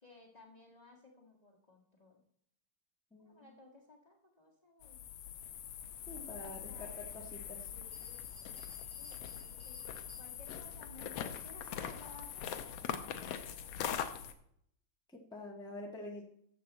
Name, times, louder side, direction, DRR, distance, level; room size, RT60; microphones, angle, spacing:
voice 1, 0.0-2.2 3.2-5.0 6.1-7.1 7.7-8.2 8.5-9.8 10.2-14.2, left 3 dB, 25° left, 0 dB, 0.9 m, -58 dB
voice 2, 3.1-3.5 6.1-7.7 15.1-16.2, left 2 dB, 5° left, 0 dB, 0.4 m, -47 dB
sound 1, 4.8-14.3, left 9 dB, 75° left, 1.4 m, -42 dB
Bell, 7.5-7.6 7.9-10.7, right 4 dB, 70° right, 2.8 m, -61 dB
13.5 x 7.4 x 4.1 m, 0.69 s
omnidirectional pair, 3.7 m